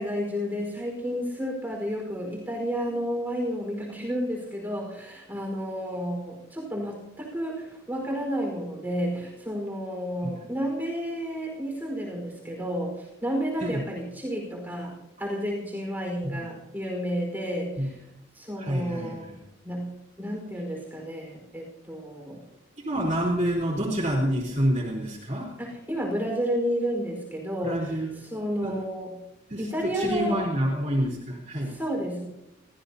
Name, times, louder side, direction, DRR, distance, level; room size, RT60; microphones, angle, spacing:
voice 1, 0.0-17.9 18.3-19.3 19.6-22.4 25.6-28.0 28.2-29.1 29.6-30.4 31.7-32.3, equal, 10° right, -1 dB, 4.8 m, -31 dB
voice 2, 18.6-19.4 22.8-25.6 27.6-28.2 28.6-28.8 29.5-31.8, equal, 35° right, -4 dB, 4.0 m, -28 dB
30.0 x 15.0 x 2.9 m, 0.88 s
head